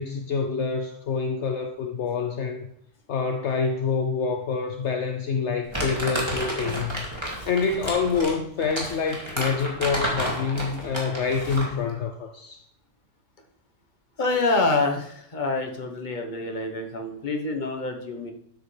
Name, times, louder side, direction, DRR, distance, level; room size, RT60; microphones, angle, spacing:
voice 1, 0.0-2.7 3.1-12.6, left 5 dB, 65° left, 5 dB, 1.0 m, -27 dB
Crumpling crinkling, 5.7-11.8, equal, 20° right, 2.7 m, -31 dB
voice 2, 14.2-18.3, left 3 dB, 35° left, 3 dB, 1.4 m, -26 dB
12.0 x 8.4 x 3.4 m, 0.71 s
omnidirectional pair, 1.4 m